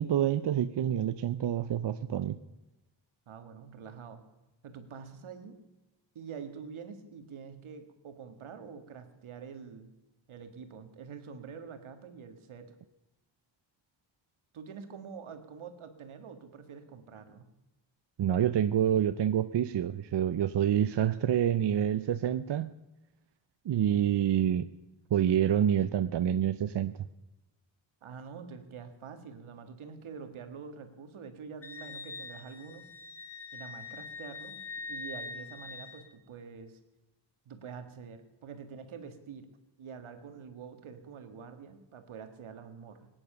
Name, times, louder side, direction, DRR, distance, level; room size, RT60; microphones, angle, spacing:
voice 1, 0.0-2.4 18.2-22.7 23.6-24.7 25.1-26.9, right 10 dB, 60° right, 12 dB, 0.7 m, -27 dB
voice 2, 3.3-4.2 4.6-5.6 6.2-9.9 10.3-12.7 14.5-17.5 28.0-32.9 33.5-34.6 34.9-36.8 37.5-39.5 39.8-43.1, right 6 dB, 80° right, 8 dB, 1.9 m, -46 dB
Wind instrument woodwind instrument, 31.6-36.1, left 4 dB, 30° left, 2.2 m, -43 dB
18.5 x 9.9 x 6.7 m, 1.0 s
cardioid pair, 60°, 48 cm